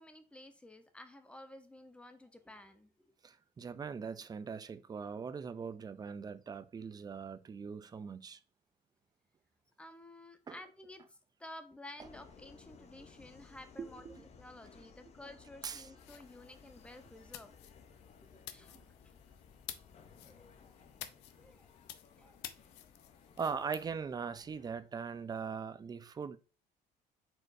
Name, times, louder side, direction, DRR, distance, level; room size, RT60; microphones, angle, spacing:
voice 1, 0.0-2.9 9.8-17.5 18.2-18.7 20.1-20.9 21.4-21.7 22.2-22.5, left 1 dB, 5° left, 0.7 m, -53 dB
voice 2, 3.2-8.4 10.5-10.6 13.8-14.3 15.6-15.9 18.7-18.8 23.4-26.4, right 6 dB, 25° right, 0.4 m, -41 dB
Subway metro underground, 12.0-24.8, left 6 dB, 40° left, 0.8 m, -59 dB
sound 1, 16.0-23.9, left 12 dB, 85° left, 0.5 m, -52 dB
4.5 x 4.5 x 2.6 m
cardioid pair, 110°, 17 cm